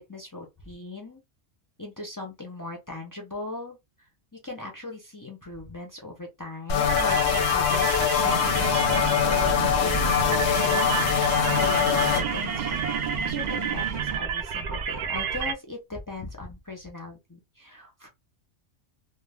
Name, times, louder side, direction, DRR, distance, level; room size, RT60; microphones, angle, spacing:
voice 1, 0.1-1.2 1.8-3.8 4.3-12.8 13.3-18.1, left 2 dB, 30° left, 0.4 m, -39 dB
sound 1, 6.7-12.2, left 9 dB, 85° left, 1.0 m, -23 dB
sound 2, 6.8-15.5, right 6 dB, 85° right, 0.3 m, -30 dB
sound 3, 8.2-14.2, right 7 dB, 50° right, 0.7 m, -34 dB
2.3 x 2.2 x 3.3 m
omnidirectional pair, 1.3 m